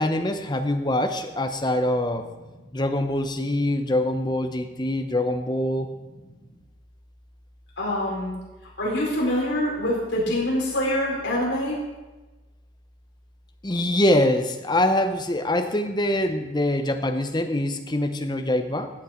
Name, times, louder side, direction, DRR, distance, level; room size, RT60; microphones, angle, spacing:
voice 1, 0.0-2.3 2.7-5.9 13.6-18.9, left 1 dB, 20° left, 6 dB, 0.8 m, -24 dB
voice 2, 7.8-8.3 8.8-11.8, left 1 dB, 60° left, -5 dB, 4.8 m, -25 dB
15.0 x 8.3 x 4.4 m, 1.1 s
head